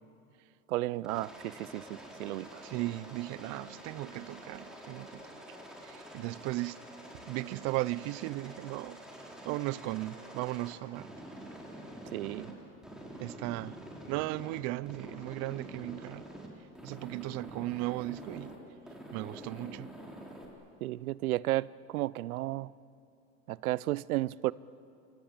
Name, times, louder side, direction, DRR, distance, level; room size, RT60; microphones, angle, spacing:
voice 1, 0.7-2.6 12.1-12.5 20.8-22.7 23.5-24.5, right 17 dB, 80° right, 0.7 m, -33 dB
Aircraft, 1.0-12.5 12.8-14.6 14.9-16.5 16.8-18.6 18.9-20.5, right 1 dB, ahead, 4.2 m, -47 dB
voice 2, 2.6-5.3 5.8-6.8 7.3-11.1 12.5-12.8 13.2-13.8 14.1-16.3 16.8-18.6 19.1-19.9, right 19 dB, 40° right, 0.5 m, -36 dB
28.0 x 23.0 x 8.8 m
supercardioid pair, 120°, 43 cm